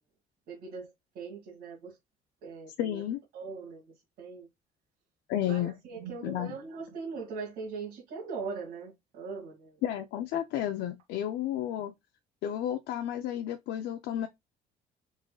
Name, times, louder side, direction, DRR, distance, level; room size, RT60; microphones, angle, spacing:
voice 1, 0.5-2.0 2.4-3.0 3.3-4.5 5.4-9.8, right 5 dB, 90° right, 2.2 m, -41 dB
voice 2, 2.8-3.2 5.3-5.7 6.2-6.5 9.8-11.9 12.4-14.3, left 11 dB, 80° left, 0.6 m, -32 dB
5.1 x 3.9 x 2.3 m
cardioid pair, 110°, 17 cm